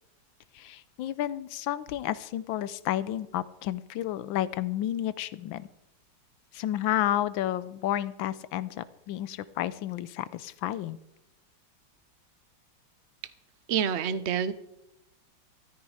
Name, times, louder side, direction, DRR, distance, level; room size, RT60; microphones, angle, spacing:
voice 1, 0.5-5.7 6.5-11.0, left 12 dB, 85° left, 16 dB, 1.4 m, -31 dB
voice 2, 13.7-14.5, right 8 dB, 55° right, 14 dB, 0.7 m, -27 dB
14.0 x 13.5 x 4.9 m, 0.85 s
omnidirectional pair, 2.1 m